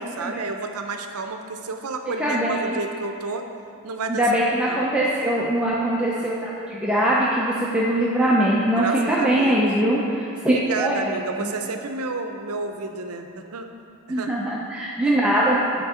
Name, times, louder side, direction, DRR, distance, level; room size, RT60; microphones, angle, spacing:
voice 1, 0.0-3.5 3.8-4.3 4.6-4.9 8.7-9.7 10.4-13.7 14.1-14.3 15.1-15.2, right 3 dB, 85° right, 6 dB, 0.6 m, -31 dB
voice 2, 2.2-2.8 4.1-11.1 11.4-11.5 14.1-15.8, right 1 dB, 5° right, -7 dB, 0.5 m, -22 dB
8.0 x 4.5 x 4.9 m, 2.6 s
head